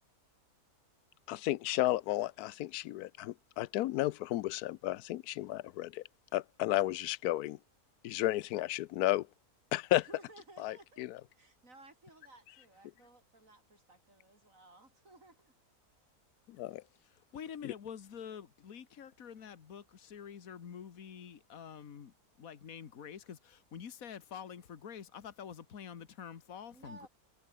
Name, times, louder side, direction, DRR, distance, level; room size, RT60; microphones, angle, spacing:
voice 1, 1.3-6.0 6.3-7.6 8.0-9.3 9.7-10.1 10.6-11.2 16.5-16.8 17.6-17.7, left 15 dB, 80° left, 1.1 m, -33 dB
voice 2, 10.0-11.1 11.3-15.5 26.7-27.1, right 2 dB, 60° right, 6.9 m, -57 dB
voice 3, 17.3-27.1, left 8 dB, 65° left, 1.8 m, -47 dB
omnidirectional pair, 1.6 m